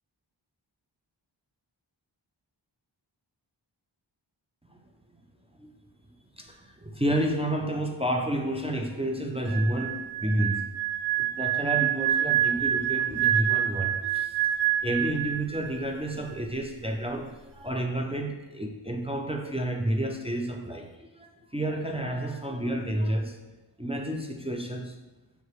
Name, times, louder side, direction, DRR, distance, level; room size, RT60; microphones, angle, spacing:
voice 1, 6.4-10.6 11.2-14.3 14.8-23.4 23.8-24.9, right 1 dB, 15° right, 2 dB, 0.5 m, -30 dB
sound 1, 9.5-16.4, right 12 dB, 60° right, 0.7 m, -27 dB
6.6 x 4.9 x 3.2 m, 1.1 s
wide cardioid pair, 50°, 45 cm